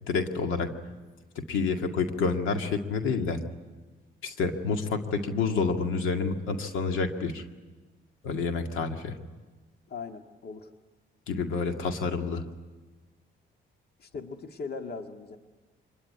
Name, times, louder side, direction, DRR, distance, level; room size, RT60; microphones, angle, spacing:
voice 1, 0.1-0.7 1.4-3.4 4.2-7.4 8.2-9.2 11.3-12.4, left 4 dB, 90° left, 5 dB, 2.1 m, -28 dB
voice 2, 9.9-10.7 14.0-15.4, left 4 dB, 50° left, 5 dB, 1.9 m, -39 dB
25.0 x 21.0 x 9.7 m, 1.3 s
cardioid pair, 90°, 20 cm